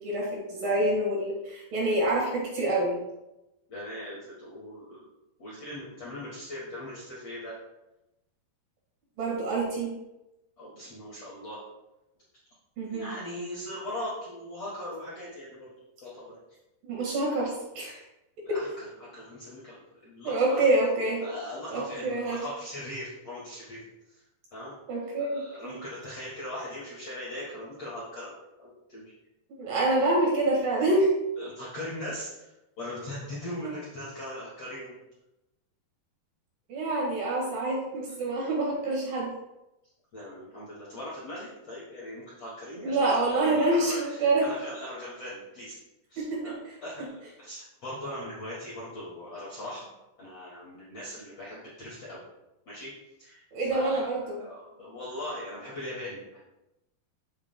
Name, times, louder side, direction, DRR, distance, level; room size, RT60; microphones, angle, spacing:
voice 1, 0.0-3.0 9.2-9.9 12.8-13.1 16.8-18.0 18.5-18.6 20.2-21.2 21.7-22.4 24.9-25.8 29.6-31.1 33.6-33.7 36.7-39.3 42.7-44.5 46.2-46.8 53.5-54.4, right 2 dB, 65° right, -3 dB, 3.2 m, -27 dB
voice 2, 3.7-5.0 5.4-7.5 10.6-11.6 12.9-15.7 16.0-16.3 18.4-20.7 21.2-23.8 24.5-24.7 25.2-28.3 28.6-29.0 31.4-32.5 32.8-35.0 40.1-45.8 46.1-46.5 46.8-49.9 50.2-52.2 52.7-52.9 53.2-53.4 53.7-54.1 54.4-56.4, left 1 dB, 45° left, -8 dB, 2.7 m, -40 dB
9.9 x 8.9 x 2.2 m, 0.95 s
omnidirectional pair, 4.5 m